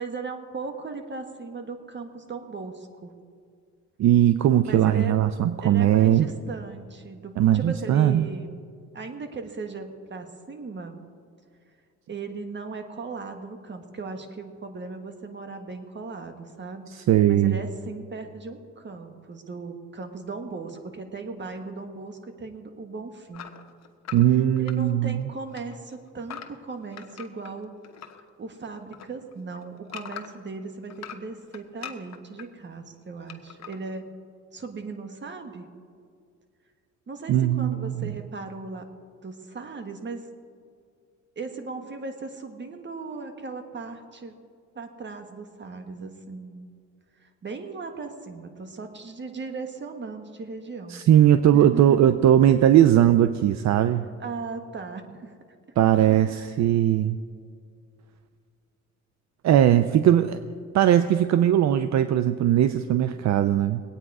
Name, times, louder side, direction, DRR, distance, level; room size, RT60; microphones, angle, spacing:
voice 1, 0.0-3.1 4.6-5.2 5.6-8.6 8.9-11.0 12.1-16.9 17.3-23.4 24.6-27.7 28.4-34.0 34.5-35.7 37.1-38.9 39.2-40.3 41.3-44.3 44.7-46.7 47.2-51.0 51.5-52.1 54.2-55.3 56.1-56.5, right 4 dB, 35° right, 6 dB, 1.6 m, -37 dB
voice 2, 4.0-6.3 7.4-8.3 16.9-17.6 24.1-25.2 37.3-38.1 50.9-54.1 55.8-57.2 59.4-60.4 60.7-63.8, right 11 dB, 65° right, 11 dB, 0.6 m, -19 dB
sound 1, 23.3-25.2 25.5-28.2 28.6-30.5 30.9-32.5 33.3-33.8, left 9 dB, 60° left, 1.1 m, -42 dB
20.5 x 8.9 x 4.8 m, 2.2 s
cardioid pair, 90°, 30 cm